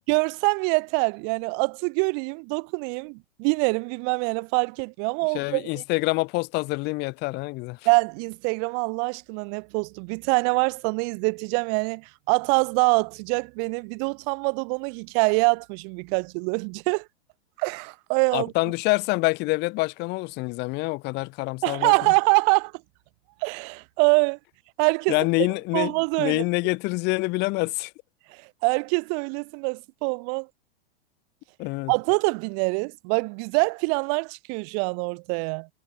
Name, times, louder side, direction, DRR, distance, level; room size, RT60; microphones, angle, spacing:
voice 1, 0.1-5.8 7.9-17.1 17.6-18.5 21.6-22.7 23.4-24.4 24.8-25.2 25.7-26.4 28.3-30.5 31.9-35.7, right 40 dB or more, 35° right, 0.7 m, -25 dB
voice 2, 5.3-7.9 18.3-21.9 25.1-27.9 31.6-31.9, left 24 dB, 35° left, 1.2 m, -26 dB
figure-of-eight pair, 95°, 30 cm